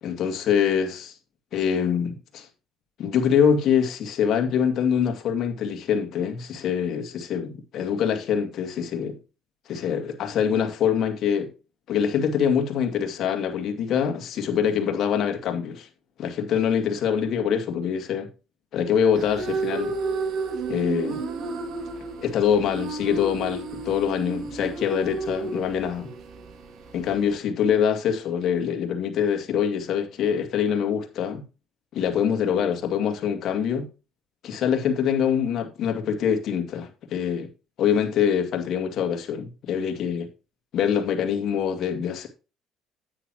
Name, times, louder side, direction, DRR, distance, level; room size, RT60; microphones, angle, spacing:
voice 1, 0.0-1.1 1.5-2.5 3.0-9.2 9.7-11.5 11.9-15.9 16.2-18.3 18.7-19.9 20.7-21.2 22.2-26.1 26.9-31.4 31.9-33.9 34.4-37.5 37.8-40.3 40.7-42.3, left 8 dB, 60° left, 2.4 m, -24 dB
sound 1, 19.2-27.4, right 4 dB, 60° right, 2.4 m, -32 dB
9.8 x 9.4 x 3.0 m
supercardioid pair, 85°, 0 cm